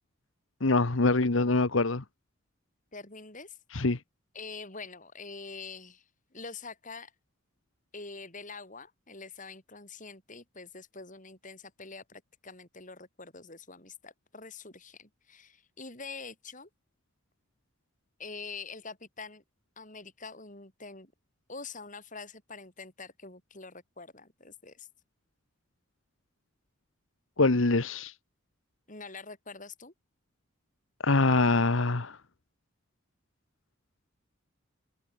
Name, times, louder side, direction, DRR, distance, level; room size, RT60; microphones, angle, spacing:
voice 1, 0.6-2.0 3.7-4.0 27.4-28.1 31.0-32.2, left 3 dB, 80° left, 1.3 m, -24 dB
voice 2, 2.9-3.6 4.3-6.0 6.3-7.1 7.9-16.7 18.2-19.4 19.8-21.1 21.5-24.9 28.9-29.9, left 4 dB, 40° left, 7.1 m, -45 dB
head